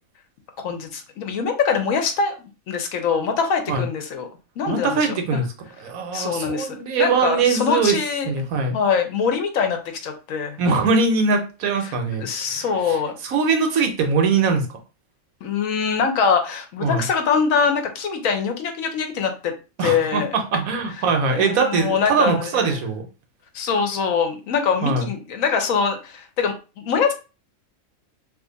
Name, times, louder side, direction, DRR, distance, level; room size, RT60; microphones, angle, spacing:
voice 1, 0.6-4.3 4.6-5.2 6.1-8.3 8.7-10.6 11.8-11.9 12.2-13.1 15.4-19.5 19.8-20.3 21.3-22.8 23.5-27.1, left 6 dB, 75° left, 5 dB, 1.1 m, -23 dB
voice 2, 4.7-5.5 5.8-8.0 8.2-8.8 10.6-14.7 16.8-17.1 19.8-23.0 24.8-25.1, right 4 dB, 80° right, 4 dB, 1.2 m, -22 dB
2.8 x 2.4 x 3.8 m, 0.32 s
omnidirectional pair, 1.4 m